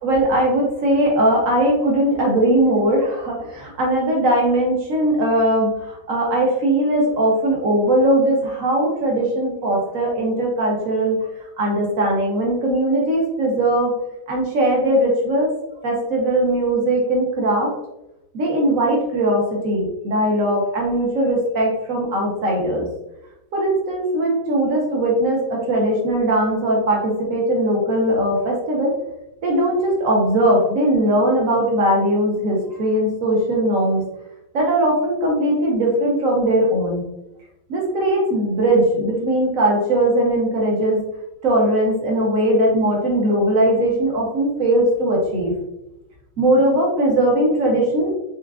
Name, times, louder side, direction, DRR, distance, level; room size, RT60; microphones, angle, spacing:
voice 1, 0.0-11.3 11.6-13.9 14.3-15.5 15.8-17.7 18.3-22.9 23.5-28.9 29.4-34.0 34.5-37.0 37.7-41.0 41.4-45.5 46.4-48.1, right 1 dB, 50° right, -1 dB, 1.2 m, -19 dB
4.7 x 3.4 x 2.4 m, 0.91 s
omnidirectional pair, 2.2 m